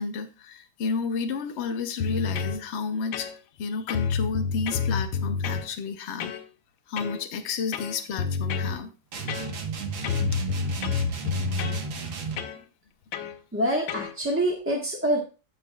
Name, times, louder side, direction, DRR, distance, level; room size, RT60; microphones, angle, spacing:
voice 1, 0.0-3.3 3.6-6.3 6.9-8.9, left 5 dB, 55° left, 5 dB, 0.7 m, -31 dB
sound 1, 2.0-2.6 3.1-3.6 3.9-5.7 6.2-6.4 7.0-7.2 7.7-8.8 9.3-9.8 10.0-11.8 12.4-12.6 13.1-13.4 13.9-14.1, left 6 dB, 80° left, 1.5 m, -29 dB
sound 2, 9.1-12.5, right 5 dB, 80° right, 2.0 m, -34 dB
voice 2, 13.5-15.2, right 1 dB, 10° right, -1 dB, 0.9 m, -25 dB
15.5 x 5.3 x 2.3 m, 0.32 s
omnidirectional pair, 2.1 m